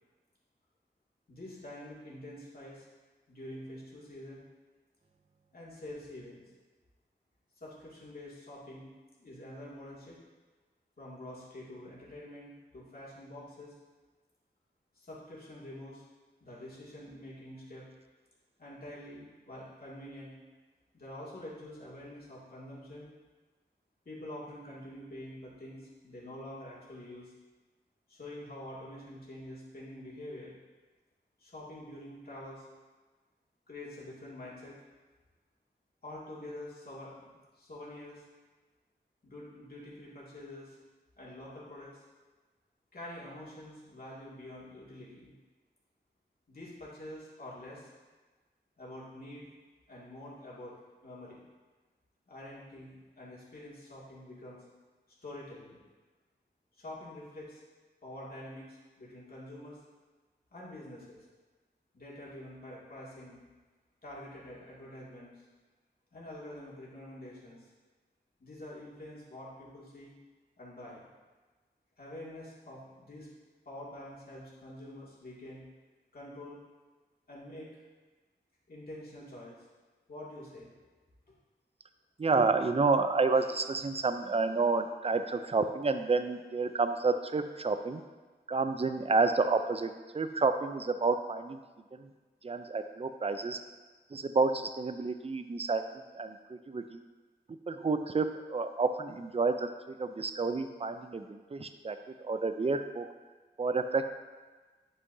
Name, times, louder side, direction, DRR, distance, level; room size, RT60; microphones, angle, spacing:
voice 1, 1.3-2.8 3.3-4.4 5.5-6.4 7.6-8.9 9.2-10.2 11.0-13.8 15.0-16.0 16.4-17.9 18.6-20.4 20.9-23.1 24.1-27.3 28.1-30.5 31.4-32.7 33.7-34.8 36.0-38.2 39.2-40.8 41.2-42.0 42.9-45.3 46.5-47.9 48.8-49.5 49.9-50.7 51.0-51.4 52.3-54.6 55.2-55.8 56.8-57.6 58.0-59.8 60.5-61.2 61.9-63.4 64.0-65.4 66.1-67.7 68.4-70.1 70.6-71.0 72.0-73.3 73.7-75.6 76.1-76.6 77.3-77.8 78.7-79.6 80.1-80.7 81.3-81.4, left 1 dB, 55° left, -7 dB, 2.2 m, -46 dB
voice 2, 82.2-88.0 88.5-91.6 91.9-92.1 92.4-93.6 94.1-97.0 97.5-103.1 103.6-104.0, right 4 dB, 35° right, 9 dB, 0.4 m, -30 dB
9.6 x 5.6 x 2.7 m, 1.3 s
wide cardioid pair, 90°, 18 cm